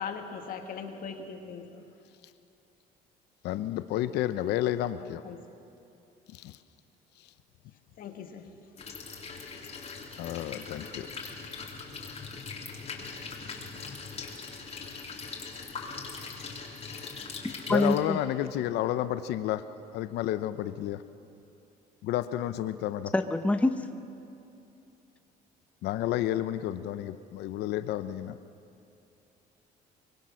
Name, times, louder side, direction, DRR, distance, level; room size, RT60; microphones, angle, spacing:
voice 1, 0.0-1.9 5.0-5.4 8.0-8.5 10.6-10.7, left 6 dB, 55° left, 4 dB, 1.8 m, -40 dB
voice 2, 3.4-5.2 6.3-6.6 7.2-7.3 10.2-11.1 17.7-19.6 19.9-21.0 22.0-23.1 25.8-28.4, left 13 dB, 80° left, 12 dB, 0.7 m, -31 dB
sound 1, 8.8-18.0, left 4 dB, 40° left, 3.5 m, -41 dB
voice 3, 17.7-18.2 23.1-23.8, left 2 dB, 10° left, 7 dB, 0.9 m, -25 dB
24.0 x 22.0 x 6.3 m, 2.7 s
cardioid pair, 110°, 17 cm